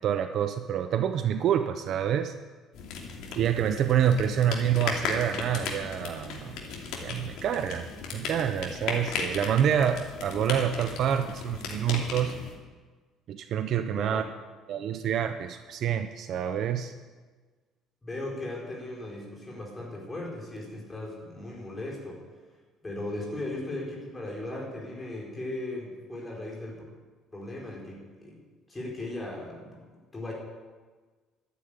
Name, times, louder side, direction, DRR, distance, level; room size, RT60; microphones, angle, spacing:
voice 1, 0.0-2.3 3.4-6.6 7.0-7.9 8.1-12.4 13.3-14.2 14.7-16.9, right 9 dB, 45° right, 8 dB, 0.7 m, -27 dB
sound 1, 2.7-12.6, left 5 dB, 65° left, 2.9 m, -36 dB
voice 2, 13.9-14.3 18.0-22.2 22.8-26.8 27.3-28.4 28.7-29.8 30.1-30.3, left 2 dB, 10° left, -3 dB, 4.0 m, -37 dB
12.5 x 10.0 x 9.0 m, 1.4 s
cardioid pair, 175°, 0 cm